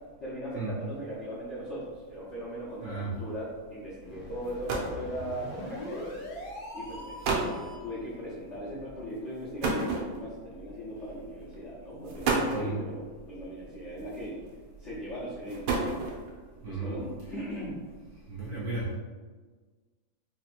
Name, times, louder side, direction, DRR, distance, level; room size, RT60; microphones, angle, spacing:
voice 1, 0.2-6.1 6.7-14.4 14.8-15.9 16.6-17.8, equal, 55° left, -9 dB, 0.7 m, -38 dB
sound 1, 4.0-8.0, left 1 dB, 75° left, 1.8 m, -42 dB
sound 2, 4.1-4.2 4.4-5.1 6.0-6.3 6.9-7.0 7.2-7.6 9.6-10.5 11.4-11.5 12.0-12.7 14.0-14.5 15.3-16.3, right 3 dB, 90° right, 1.6 m, -30 dB
voice 2, 16.6-16.9 18.3-18.9, right 3 dB, 70° right, -6 dB, 0.9 m, -34 dB
5.0 x 2.8 x 2.4 m, 1.4 s
omnidirectional pair, 2.2 m